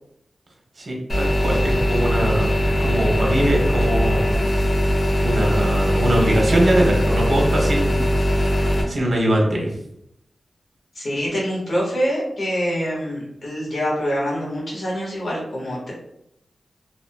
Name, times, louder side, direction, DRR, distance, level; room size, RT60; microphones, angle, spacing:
voice 1, 0.8-4.3 5.2-9.8, right 1 dB, 55° right, -1 dB, 0.9 m, -22 dB
sound 1, 1.1-8.8, equal, 45° left, 1.1 m, -20 dB
voice 2, 10.9-15.9, equal, 60° left, -4 dB, 1.4 m, -25 dB
3.0 x 2.9 x 2.2 m, 0.75 s
cardioid pair, 60°, 0 cm